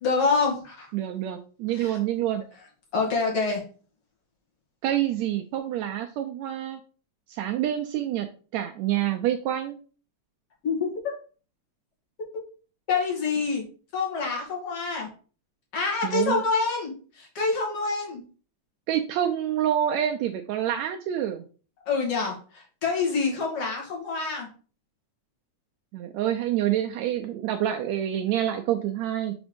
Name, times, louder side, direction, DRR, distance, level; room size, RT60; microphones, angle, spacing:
voice 1, 0.0-0.9 1.8-2.0 2.9-3.6 10.6-10.9 12.9-13.6 13.9-15.1 15.7-16.9 17.2-18.2 21.9-24.5, left 4 dB, 55° left, -1 dB, 2.7 m, -26 dB
voice 2, 0.9-2.4 4.8-6.8 7.3-8.3 8.5-9.8 16.0-16.4 18.9-21.4 25.9-29.3, right 11 dB, 80° right, 5 dB, 1.7 m, -27 dB
6.1 x 3.6 x 5.1 m, 0.38 s
omnidirectional pair, 3.5 m